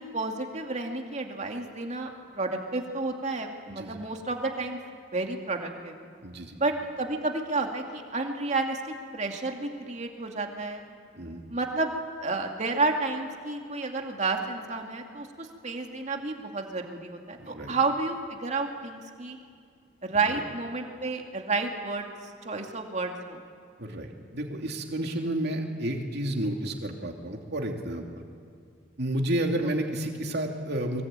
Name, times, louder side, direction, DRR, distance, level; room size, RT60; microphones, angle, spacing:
voice 1, 0.0-4.8 5.1-6.0 6.6-10.8 11.5-11.9 12.2-19.4 20.0-22.1 22.4-23.4, right 3 dB, 35° right, 3 dB, 2.5 m, -31 dB
voice 2, 3.7-4.0 6.2-6.6 11.2-11.4 17.4-17.7 20.3-20.4 23.8-28.0 29.0-31.0, right 1 dB, 55° right, 2 dB, 2.8 m, -31 dB
23.5 x 23.0 x 9.0 m, 2.2 s
head